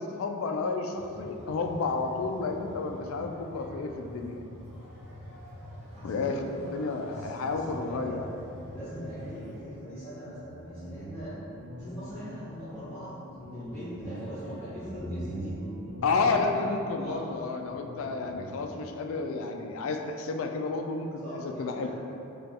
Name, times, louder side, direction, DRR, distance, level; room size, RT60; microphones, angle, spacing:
voice 1, 0.0-4.4 6.0-8.2 16.0-21.9, left 4 dB, 60° left, 4 dB, 0.3 m, -31 dB
sound 1, 0.9-9.6, left 1 dB, 50° right, 1.5 m, -46 dB
voice 2, 5.8-6.2 6.5-8.2 8.7-11.3 11.7-13.2 13.5-15.6 16.1-16.7 17.0-17.3 21.2-21.9, equal, 10° left, -16 dB, 0.8 m, -41 dB
Guitar, 10.3-18.8, right 1 dB, 45° left, 0.7 m, -42 dB
5.1 x 2.3 x 2.9 m, 2.8 s
head